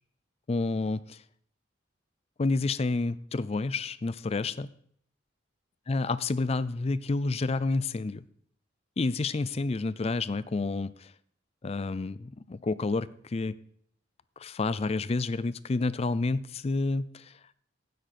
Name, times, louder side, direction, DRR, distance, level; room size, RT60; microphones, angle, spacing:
voice 1, 0.5-1.2 2.4-4.7 5.9-8.2 9.0-11.1 11.6-13.6 14.4-17.3, left 3 dB, 35° left, 17 dB, 0.4 m, -29 dB
12.5 x 9.3 x 4.2 m, 0.64 s
head